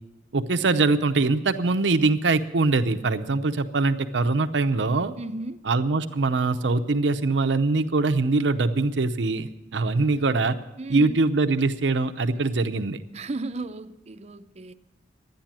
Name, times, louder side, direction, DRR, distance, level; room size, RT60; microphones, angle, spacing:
voice 1, 0.3-5.1 5.7-10.6 10.9-13.0, right 3 dB, 85° right, 0.7 m, -23 dB
voice 2, 5.2-5.6 10.8-11.2 13.1-14.7, right 2 dB, 40° right, 0.6 m, -35 dB
11.5 x 9.9 x 7.4 m
head